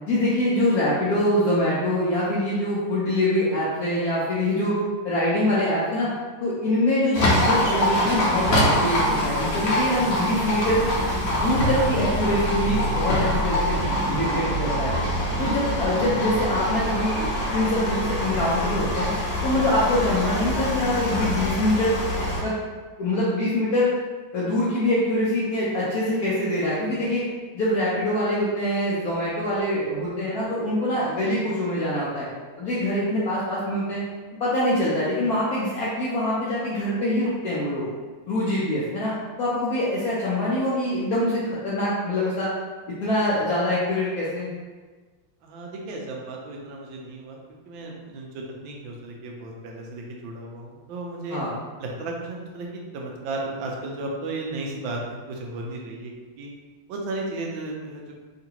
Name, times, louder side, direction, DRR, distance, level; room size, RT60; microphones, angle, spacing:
voice 1, 0.1-4.8 5.0-6.1 6.4-10.9 11.3-15.0 15.4-19.1 19.4-22.0 22.4-22.5 23.0-23.9 24.3-27.2 27.5-32.3 32.6-34.0 34.4-37.9 38.3-39.1 39.4-42.5 42.9-44.5 51.3-51.5, left 1 dB, 85° left, -8 dB, 0.8 m, -24 dB
Livestock farm animals working animals, 7.1-22.4, equal, 65° left, 1.2 m, -24 dB
voice 2, 45.4-47.4 47.6-51.4 51.8-56.5 56.9-58.1, right 2 dB, 75° right, -1 dB, 1.3 m, -34 dB
3.7 x 2.4 x 2.8 m, 1.3 s
omnidirectional pair, 2.3 m